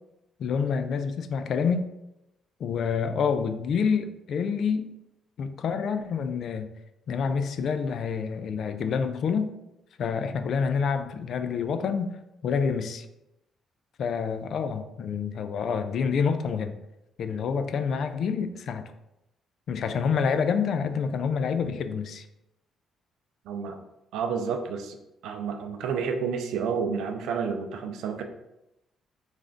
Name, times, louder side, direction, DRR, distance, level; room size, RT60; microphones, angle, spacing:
voice 1, 0.4-1.9 2.6-4.9 5.4-6.7 7.1-9.5 10.0-12.2 12.4-13.1 14.0-16.8 17.2-18.9 19.7-22.3, left 6 dB, 60° left, 9 dB, 0.3 m, -27 dB
voice 2, 23.5-23.8 24.1-25.0 25.2-28.2, right 6 dB, 85° right, 5 dB, 0.4 m, -30 dB
3.2 x 2.5 x 3.7 m, 0.89 s
cardioid pair, 105°, 0 cm